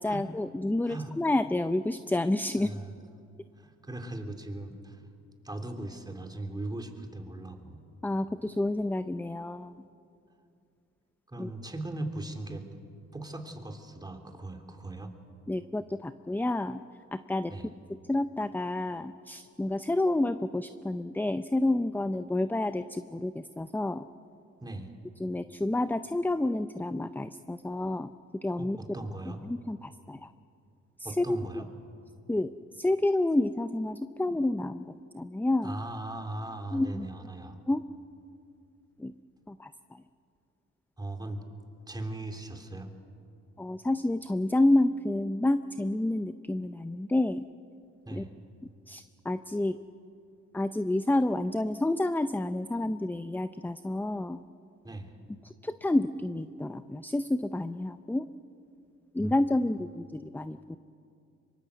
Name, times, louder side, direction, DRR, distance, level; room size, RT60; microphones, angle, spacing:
voice 1, 0.0-2.7 8.0-9.8 11.4-11.5 15.5-16.8 17.1-17.5 18.1-24.0 25.2-28.1 28.4-29.0 29.3-30.3 31.0-31.6 32.3-32.5 32.8-35.8 36.7-37.1 37.7-37.8 39.0-39.1 39.5-39.7 43.6-47.4 48.1-48.2 48.9-49.8 50.5-54.4 55.4-58.3 59.1-60.8, left 1 dB, 5° left, 11 dB, 0.6 m, -29 dB
voice 2, 2.6-2.9 3.6-5.0 5.4-7.8 11.3-12.7 13.1-15.1 17.5-17.7 24.6-24.9 28.6-29.4 31.0-31.7 35.6-37.6 41.0-41.4 41.9-42.9 48.1-48.3 54.8-55.1 59.2-59.3, right 2 dB, 15° right, 5 dB, 3.1 m, -39 dB
25.0 x 23.0 x 8.1 m, 2.5 s
cardioid pair, 90°, 30 cm